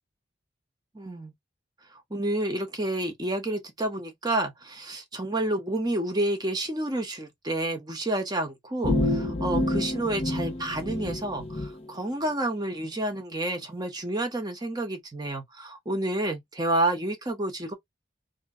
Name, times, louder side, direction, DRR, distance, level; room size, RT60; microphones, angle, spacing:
voice 1, 0.9-1.3 2.1-17.7, right 1 dB, 20° right, 1.0 m, -29 dB
sound 1, 8.8-11.7, left 1 dB, 35° left, 0.8 m, -28 dB
2.9 x 2.7 x 3.6 m
head